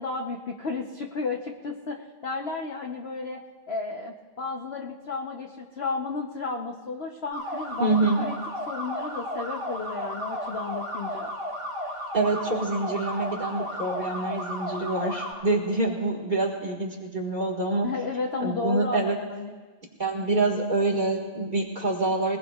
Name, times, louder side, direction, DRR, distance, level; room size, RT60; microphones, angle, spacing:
voice 1, 0.0-3.4 3.7-7.9 8.2-8.3 8.7-11.4 17.8-19.5, left 3 dB, 50° left, 1 dB, 0.8 m, -33 dB
sound 1, 7.3-15.3, equal, 25° left, 6.4 m, -34 dB
voice 2, 7.8-8.2 12.1-17.9 18.4-19.2 20.0-22.4, right 2 dB, 25° right, -1 dB, 1.7 m, -26 dB
22.0 x 20.0 x 2.4 m, 1.4 s
omnidirectional pair, 2.2 m